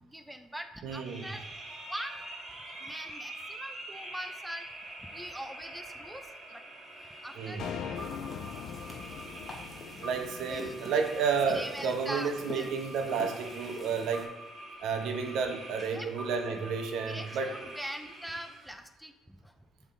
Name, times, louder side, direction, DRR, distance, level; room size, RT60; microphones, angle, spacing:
voice 1, 0.0-1.5 1.9-2.2 2.8-4.7 5.0-6.6 7.2-7.6 8.6-8.9 10.5-10.7 11.5-12.7 15.9-16.1 16.5-16.6 17.1-19.1 19.4-19.5, equal, ahead, 7 dB, 0.4 m, -42 dB
voice 2, 0.8-1.3 7.4-7.7 10.0-14.3 14.8-17.5, right 5 dB, 70° right, 5 dB, 0.8 m, -31 dB
sound 1, 0.9-18.7, right 1 dB, 25° right, 1.5 m, -45 dB
sound 2, 7.6-12.0, left 8 dB, 60° left, 0.4 m, -42 dB
sound 3, 7.9-14.3, left 2 dB, 20° left, 1.2 m, -47 dB
7.2 x 3.6 x 3.7 m, 1.1 s
cardioid pair, 125°, 0 cm